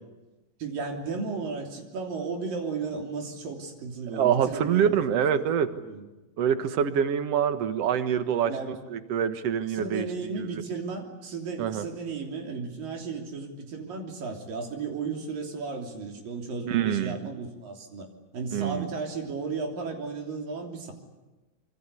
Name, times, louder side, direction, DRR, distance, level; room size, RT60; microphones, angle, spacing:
voice 1, 0.6-4.9 5.3-5.5 5.9-6.0 8.5-8.7 9.7-18.1 18.3-20.9, right 4 dB, 80° right, 2 dB, 5.0 m, -34 dB
voice 2, 4.1-5.7 6.4-10.1 10.3-10.6 11.6-11.9 16.7-17.2 18.5-18.9, right 8 dB, 55° right, 9 dB, 2.2 m, -25 dB
26.5 x 24.5 x 8.3 m, 1.1 s
omnidirectional pair, 3.9 m